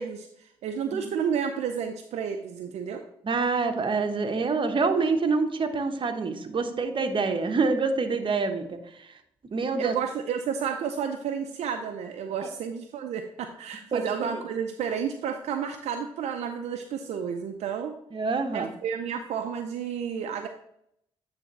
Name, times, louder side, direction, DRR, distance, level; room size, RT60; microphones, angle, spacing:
voice 1, 0.0-3.0 9.8-18.0 18.5-20.5, right 7 dB, 75° right, 5 dB, 0.5 m, -31 dB
voice 2, 3.2-9.1 9.5-9.9 13.9-14.3 18.1-18.7, right 4 dB, 45° right, 6 dB, 1.0 m, -26 dB
9.1 x 3.5 x 4.1 m, 0.73 s
supercardioid pair, 50°, 11 cm